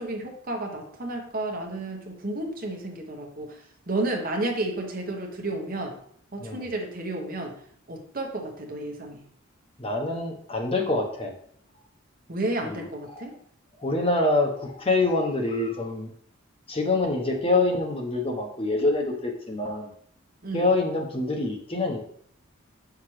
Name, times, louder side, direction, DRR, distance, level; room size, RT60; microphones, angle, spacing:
voice 1, 0.0-3.6 3.9-6.0 6.3-7.5 7.9-9.2 12.3-13.3 20.4-20.7, right 2 dB, 45° right, 2 dB, 1.1 m, -31 dB
voice 2, 6.4-6.7 9.8-11.3 12.6-12.8 13.1-13.3 13.8-16.1 16.7-19.9 20.5-22.0, left 2 dB, 25° left, 2 dB, 0.9 m, -25 dB
7.3 x 5.9 x 3.2 m, 0.62 s
head